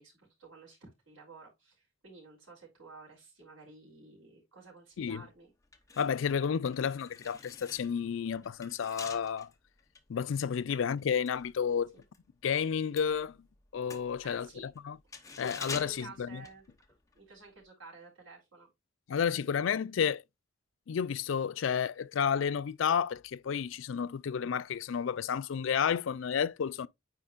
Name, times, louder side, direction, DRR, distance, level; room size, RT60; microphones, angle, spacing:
voice 1, 0.0-5.5 11.9-12.0 14.2-14.7 15.7-16.6 17.1-18.7, right 3 dB, 85° right, 3.7 m, -52 dB
sound 1, 5.6-12.3 12.5-17.2 17.5-17.6, left 4 dB, 15° left, 0.8 m, -47 dB
voice 2, 6.0-9.5 10.1-11.9 12.4-13.4 13.7-15.0 15.4-16.4 19.1-20.2 20.9-26.9, left 7 dB, 70° left, 0.4 m, -31 dB
9.7 x 4.2 x 2.4 m
head